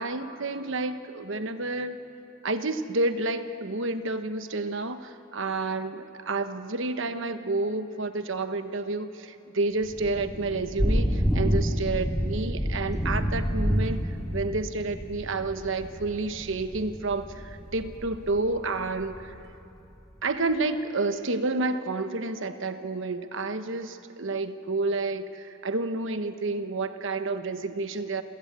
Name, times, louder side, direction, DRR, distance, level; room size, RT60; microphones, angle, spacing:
voice 1, 0.0-2.0 2.4-14.1 14.3-19.3 20.2-28.2, right 3 dB, 65° right, 9 dB, 1.1 m, -30 dB
Thunder / Rain, 9.8-19.4, equal, ahead, 2.7 m, -29 dB
27.5 x 16.0 x 8.4 m, 2.8 s
head